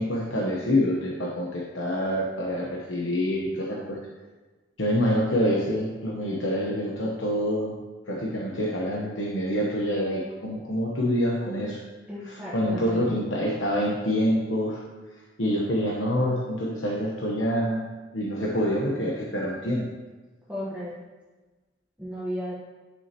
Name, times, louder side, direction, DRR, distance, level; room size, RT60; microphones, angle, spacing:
voice 1, 0.0-4.0 4.8-7.7 8.1-11.8 12.2-14.8 15.4-17.8 18.1-19.8, equal, 85° left, -3 dB, 1.0 m, -26 dB
voice 2, 12.1-13.1 20.5-20.9 22.0-22.5, equal, 5° right, -8 dB, 1.2 m, -34 dB
9.5 x 6.3 x 2.9 m, 1.2 s
head